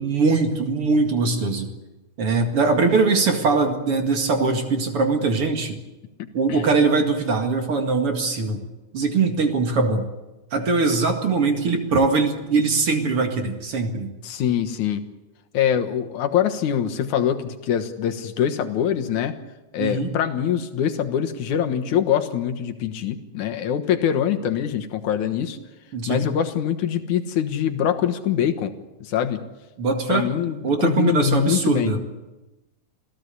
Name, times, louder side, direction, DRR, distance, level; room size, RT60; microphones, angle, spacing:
voice 1, 0.0-1.7 2.2-5.8 6.3-8.6 8.9-10.1 10.5-14.1 19.8-20.1 25.9-26.3 29.8-30.3 30.6-32.0, right 4 dB, 50° right, 5 dB, 2.8 m, -21 dB
voice 2, 14.2-15.0 15.5-19.4 19.7-25.6 26.1-28.7 29.0-29.4 30.1-31.9, left 9 dB, 75° left, 7 dB, 2.7 m, -23 dB
27.5 x 16.0 x 8.3 m, 1.1 s
omnidirectional pair, 3.6 m